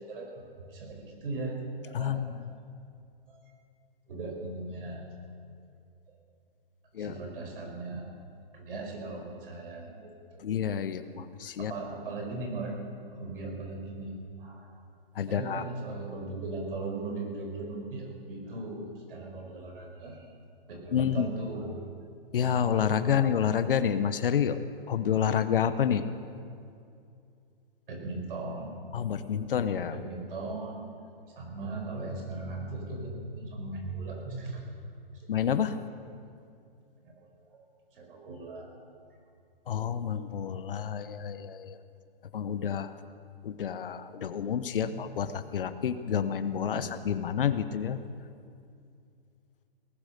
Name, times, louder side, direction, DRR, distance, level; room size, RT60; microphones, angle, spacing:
voice 1, 0.0-2.3 3.3-3.4 4.1-5.0 6.1-6.2 7.0-8.1 8.5-10.5 11.6-12.8 13.1-14.7 15.3-20.3 20.7-21.8 23.0-23.3 27.9-28.8 29.9-30.9 31.3-34.7 35.1-35.3 37.0-37.6 37.9-38.8 44.8-45.0 46.7-46.9, right 2 dB, 65° right, 1 dB, 5.0 m, -38 dB
voice 2, 1.9-2.4 6.9-7.1 10.4-11.7 15.1-15.6 20.9-21.3 22.3-24.6 24.9-26.1 28.9-30.0 35.3-35.8 39.7-41.8 42.3-42.9 43.4-48.0, left 8 dB, 65° left, 12 dB, 1.0 m, -29 dB
18.5 x 11.5 x 6.7 m, 2.4 s
hypercardioid pair, 140°, 29 cm